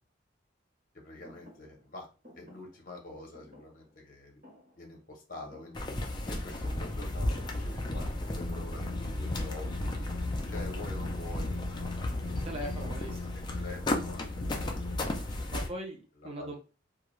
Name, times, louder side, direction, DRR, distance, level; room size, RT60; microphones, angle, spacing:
voice 1, 1.0-2.1 2.3-4.4 4.8-5.8 6.3-9.9 10.5-11.5 11.8-12.1 13.5-14.7 15.3-15.5 16.2-16.6, left 2 dB, 45° left, 1 dB, 0.7 m, -46 dB
Thump thud, 1.2-6.2 6.5-7.1 7.4-13.6, left 1 dB, 45° right, 1.0 m, -57 dB
sound 1, 5.7-15.7, left 1 dB, 20° left, 0.4 m, -34 dB
sound 2, 8.3-15.0, left 3 dB, 85° left, 0.4 m, -42 dB
voice 2, 12.3-13.2 15.5-16.6, right 1 dB, 30° right, 1 dB, 0.6 m, -40 dB
2.3 x 2.2 x 2.9 m, 0.33 s
head